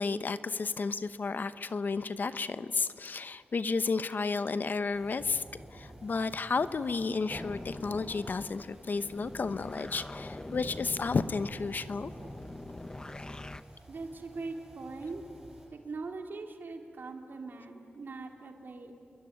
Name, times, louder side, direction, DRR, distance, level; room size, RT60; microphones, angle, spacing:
voice 1, 0.0-5.4 5.7-12.1, left 4 dB, 55° left, 12 dB, 0.9 m, -32 dB
sound 1, 4.9-15.7, right 1 dB, 10° right, 6.9 m, -51 dB
sound 2, 7.3-13.6, left 2 dB, 20° left, 0.7 m, -44 dB
voice 2, 13.9-15.2 15.7-18.9, right 3 dB, 60° right, 3 dB, 3.1 m, -41 dB
28.0 x 22.0 x 9.5 m, 2.4 s
wide cardioid pair, 120°, 4 cm